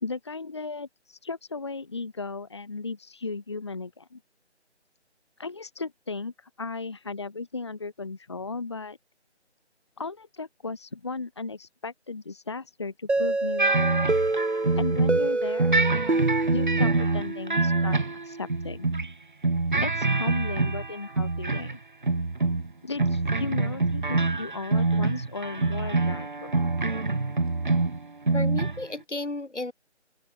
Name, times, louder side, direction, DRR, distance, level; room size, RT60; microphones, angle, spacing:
voice 1, 0.0-4.2 5.4-9.0 10.0-13.9 14.8-15.8 16.5-18.0 18.2-18.9 19.8-21.8 22.8-26.6, left 3 dB, 25° left, 2.0 m, -35 dB
sound 1, 13.1-17.8, right 2 dB, 70° right, 5.8 m, -27 dB
sound 2, 13.6-15.3 15.6-19.1 19.4-21.8 22.0-22.7 23.0-28.9, right 3 dB, 45° right, 1.1 m, -25 dB
voice 2, 28.3-29.7, left 2 dB, 85° left, 6.6 m, -33 dB
open air
figure-of-eight pair, 175°, 34 cm